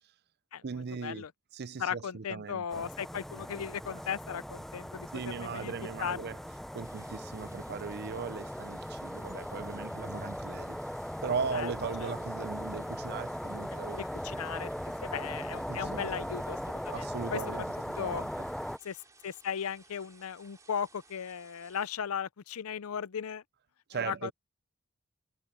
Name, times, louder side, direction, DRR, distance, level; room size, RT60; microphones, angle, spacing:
voice 1, 0.6-1.2 1.5-2.6 5.1-6.4 6.7-10.8 11.2-14.0 15.7-16.1 16.9-18.3 23.9-24.3, right 5 dB, 45° right, 0.5 m, -38 dB
voice 2, 1.8-5.7 6.0-6.2 11.5-11.7 12.0-12.1 13.7-14.7 15.0-17.4 18.0-18.3 18.8-23.4 23.9-24.3, left 7 dB, 70° left, 0.5 m, -37 dB
sound 1, 2.7-18.8, equal, ahead, 0.5 m, -39 dB
sound 2, 6.8-21.9, right 3 dB, 15° right, 2.6 m, -60 dB
head